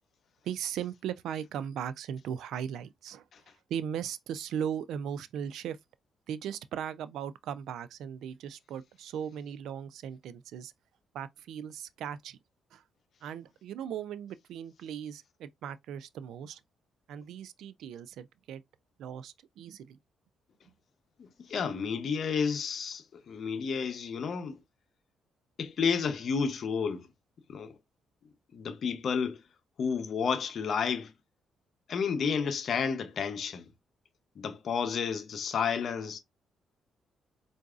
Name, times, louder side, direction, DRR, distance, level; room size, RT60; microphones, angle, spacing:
voice 1, 0.4-3.3 3.7-5.8 6.3-10.7 11.1-12.4 12.7-12.8 13.2-16.6 17.1-18.6 19.0-20.0 20.7-20.8, right 9 dB, 80° right, 0.3 m, -38 dB
voice 2, 21.2-24.6 25.6-27.1 27.5-27.7 28.5-29.4 29.8-31.1 31.9-33.7 34.4-36.2, left 6 dB, 55° left, 0.7 m, -31 dB
4.6 x 2.5 x 2.4 m
cardioid pair, 90°, 0 cm